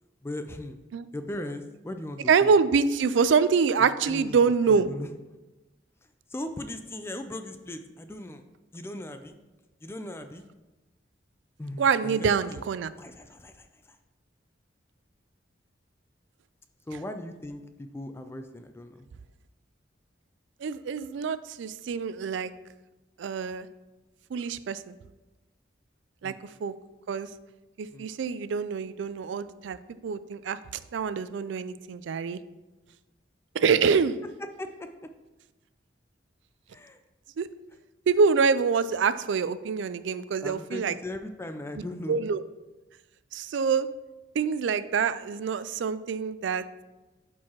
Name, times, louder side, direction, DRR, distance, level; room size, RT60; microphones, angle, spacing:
voice 1, 0.2-0.8 1.1-2.5 3.8-4.4 4.7-5.1 6.3-8.4 8.7-9.3 9.8-10.4 11.6-12.6 13.0-14.0 16.9-19.1 26.2-26.4 27.9-28.1 33.7-33.8 34.6-35.1 36.7-37.0 40.4-42.2, left 1 dB, 15° left, 8 dB, 0.3 m, -38 dB
voice 2, 2.3-4.9 11.8-12.9 20.6-22.5 23.2-23.7 24.3-24.9 26.2-26.3 26.6-26.7 27.1-27.3 27.8-29.8 30.0-30.6 30.9-32.4 33.5-34.2 37.4-37.5 38.1-40.9 42.1-42.4 43.3-43.9 44.3-46.6, right 5 dB, 75° right, 15 dB, 0.4 m, -25 dB
12.0 x 4.6 x 2.9 m, 1.1 s
head